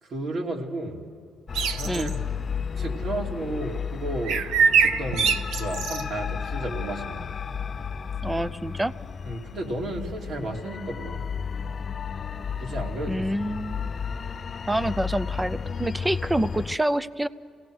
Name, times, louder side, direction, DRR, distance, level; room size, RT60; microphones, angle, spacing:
voice 1, 0.0-1.1 1.7-2.3 2.8-4.5 4.8-7.3 9.2-11.3 12.6-13.3, right 2 dB, 65° right, 1 dB, 2.6 m, -33 dB
sound 1, 1.5-16.8, left 6 dB, 45° left, 0.4 m, -33 dB
sound 2, 1.5-2.1 4.3-6.0, right 6 dB, 90° right, 0.8 m, -23 dB
voice 2, 8.2-8.9 13.1-13.9 14.7-17.3, right 1 dB, 10° right, 14 dB, 0.6 m, -27 dB
27.0 x 18.0 x 6.2 m, 2.5 s
cardioid pair, 90°, 0 cm